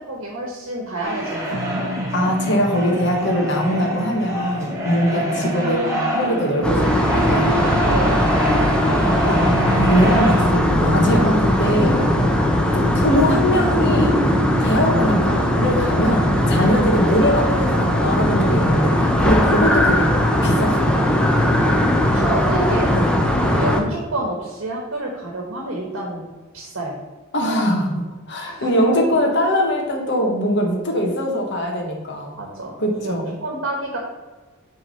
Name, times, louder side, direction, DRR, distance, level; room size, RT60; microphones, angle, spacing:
voice 1, 0.0-1.8 5.1-5.5 7.9-8.5 16.3-17.2 22.0-22.9 23.5-26.2 26.5-27.0 28.4-28.7 32.4-34.0, right 2 dB, 75° right, -1 dB, 1.2 m, -29 dB
sound 1, 1.0-10.4, right 1 dB, 15° right, 1.8 m, -27 dB
sound 2, 1.5-17.0, right 1 dB, 50° right, 0.6 m, -31 dB
voice 2, 2.1-5.8 6.1-7.5 9.2-12.0 12.7-14.1 14.6-20.1 20.4-21.0 22.9-23.2 27.3-32.3 32.8-33.3, equal, 60° left, 1 dB, 1.2 m, -21 dB
sound 3, 6.6-23.8, left 1 dB, 5° left, 0.7 m, -19 dB
6.1 x 3.6 x 5.6 m, 1.2 s
head